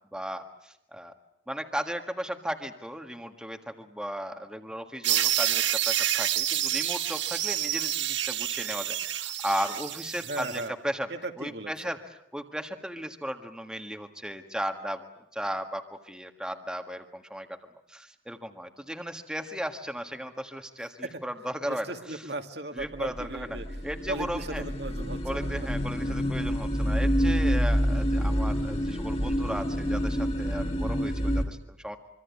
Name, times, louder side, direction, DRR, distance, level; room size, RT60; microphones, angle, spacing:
voice 1, 0.1-1.1 1.5-11.1 11.4-15.1 15.3-17.5 17.9-22.2 22.7-23.6 23.8-24.6 25.2-32.0, equal, 5° right, 5 dB, 1.6 m, -36 dB
sound 1, 5.0-10.6, right 12 dB, 80° right, 1.6 m, -28 dB
voice 2, 10.3-10.8 11.1-11.7 21.0-21.1 21.7-23.7 24.1-25.5, right 2 dB, 65° right, 5 dB, 2.4 m, -36 dB
sound 2, 22.8-31.5, equal, 30° left, 2.7 m, -27 dB
25.5 x 25.0 x 8.4 m, 0.78 s
head